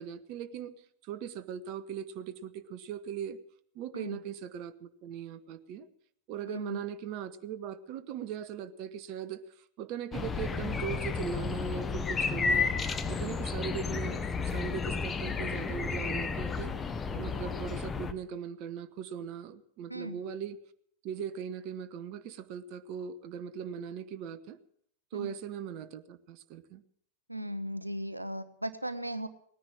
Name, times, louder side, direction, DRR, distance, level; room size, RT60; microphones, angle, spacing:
voice 1, 0.0-3.4 3.7-5.9 6.3-12.7 13.1-16.7 17.1-20.6 21.0-24.6 25.1-26.8, right 8 dB, 40° right, 12 dB, 0.9 m, -39 dB
voice 2, 6.5-6.8 19.9-20.2 25.1-25.3 27.3-29.3, equal, 85° right, 12 dB, 0.7 m, -37 dB
sound 1, 10.1-18.1, left 5 dB, 20° left, 1.0 m, -32 dB
18.0 x 10.0 x 7.2 m, 0.67 s
figure-of-eight pair, 90°, 0 cm